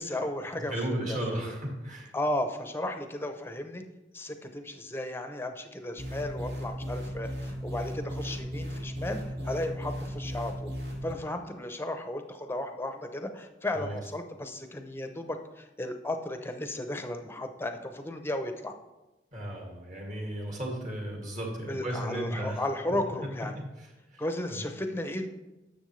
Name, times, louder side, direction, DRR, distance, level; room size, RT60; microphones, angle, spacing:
voice 1, 0.0-0.7 1.1-1.5 2.1-3.8 4.1-10.7 11.0-18.7 21.7-23.6 24.2-25.3, left 1 dB, 15° left, 6 dB, 0.6 m, -34 dB
voice 2, 0.6-2.1 13.7-14.0 19.3-22.6 23.5-24.6, right 1 dB, 45° right, -1 dB, 2.1 m, -35 dB
sound 1, 6.0-11.1, equal, 70° right, 1.9 m, -36 dB
10.5 x 7.0 x 3.2 m, 1.0 s
head